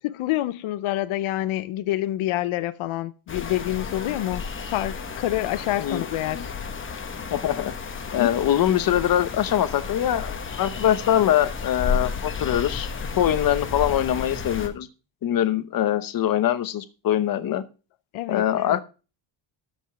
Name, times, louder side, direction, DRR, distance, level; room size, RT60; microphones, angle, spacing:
voice 1, 0.0-6.5 8.2-8.4 18.1-18.8, left 14 dB, 85° left, 0.8 m, -27 dB
sound 1, 3.3-14.7, left 5 dB, 25° left, 1.2 m, -32 dB
voice 2, 7.3-7.7 8.1-12.9 13.2-14.9 15.2-17.6 18.3-18.8, left 11 dB, 45° left, 0.9 m, -23 dB
13.0 x 5.4 x 6.1 m
cardioid pair, 180°, 48 cm